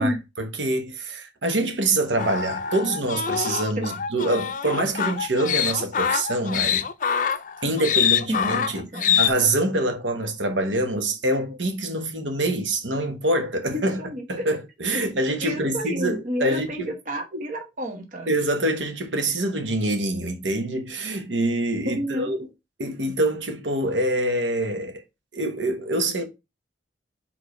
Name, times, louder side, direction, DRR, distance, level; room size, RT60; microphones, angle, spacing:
voice 1, 0.0-6.8 7.6-14.0 14.3-16.9 18.3-22.5 22.8-25.0 25.3-26.2, right 1 dB, 85° right, 1.3 m, -25 dB
sound 1, 2.2-9.3, left 8 dB, 45° left, 0.4 m, -25 dB
voice 2, 8.3-9.2 13.7-14.4 14.9-15.0 15.4-18.3 21.9-22.3, equal, 45° right, 1.2 m, -30 dB
4.9 x 3.9 x 5.1 m
head